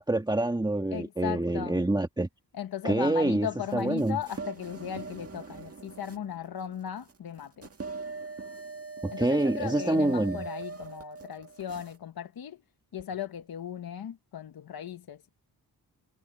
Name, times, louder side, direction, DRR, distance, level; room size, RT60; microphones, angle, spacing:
voice 1, 0.0-2.3 2.8-3.5 3.7-4.2 9.0-10.4, right 2 dB, 10° right, 1.6 m, -26 dB
voice 2, 0.9-1.8 2.5-7.7 9.1-12.6 12.9-15.3, left 9 dB, 60° left, 1.2 m, -37 dB
sound 1, 3.7-12.0, right 4 dB, 35° right, 1.9 m, -41 dB
cardioid pair, 85°, 40 cm